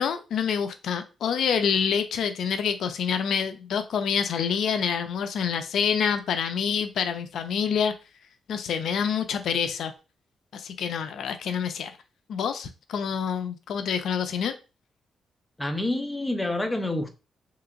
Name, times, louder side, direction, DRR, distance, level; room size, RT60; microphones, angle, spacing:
voice 1, 0.0-7.9 8.5-9.9 10.5-11.9 12.3-14.5, left 7 dB, 75° left, 0.3 m, -27 dB
voice 2, 15.6-17.1, left 1 dB, 10° left, 0.5 m, -27 dB
3.3 x 2.8 x 2.5 m
cardioid pair, 110°, 0 cm